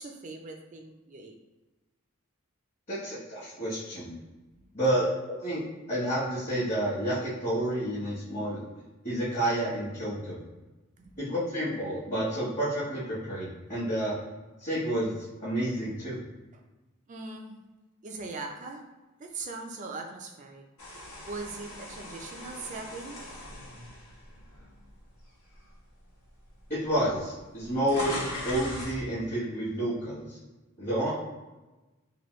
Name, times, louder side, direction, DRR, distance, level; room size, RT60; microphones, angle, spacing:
voice 1, 0.0-1.4 11.0-11.2 16.5-16.6 17.1-17.6 18.0-18.8 19.2-20.6 21.2-23.2, right 3 dB, 35° right, 3 dB, 0.4 m, -40 dB
voice 2, 2.9-4.1 4.7-5.6 5.9-8.6 9.0-10.4 11.2-14.1 14.6-16.2 26.7-30.4 30.8-31.1, right 1 dB, 35° left, -10 dB, 1.1 m, -30 dB
sound 1, 20.8-25.0 25.5-25.7 26.6-26.7 26.9-29.0, left 1 dB, 85° left, 1.1 m, -40 dB
2.9 x 2.6 x 3.1 m, 1.1 s
head